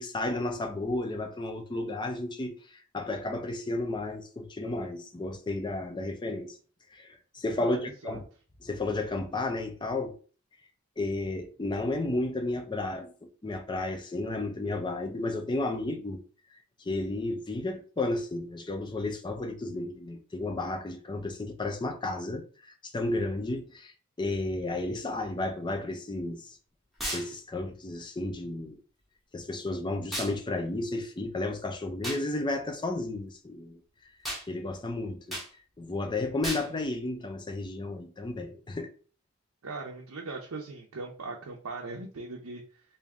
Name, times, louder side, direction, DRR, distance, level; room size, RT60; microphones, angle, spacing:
voice 1, 0.0-6.6 6.9-8.2 8.6-10.2 11.0-13.1 13.4-16.2 16.8-23.9 24.2-26.6 27.1-28.8 29.3-33.8 34.5-35.4 35.8-38.9, left 2 dB, 20° left, 0.5 m, -32 dB
voice 2, 7.6-8.2 39.6-42.8, right 3 dB, 75° right, 0.6 m, -40 dB
sound 1, 27.0-27.3 30.1-30.3 32.0-32.2 34.2-34.5 35.3-35.5 36.4-36.7, equal, ahead, 1.1 m, -34 dB
3.6 x 2.7 x 3.5 m
head